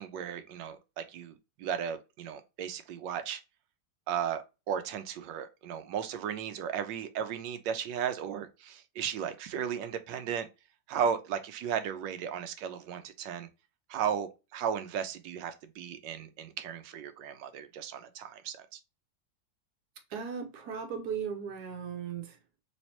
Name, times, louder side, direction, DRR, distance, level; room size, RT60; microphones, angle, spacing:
voice 1, 0.0-3.4 4.1-10.5 10.9-13.5 13.9-18.8, right 8 dB, 80° right, 1.3 m, -35 dB
voice 2, 20.1-22.4, right 7 dB, 65° right, 1.2 m, -37 dB
3.4 x 3.1 x 2.8 m
omnidirectional pair, 2.0 m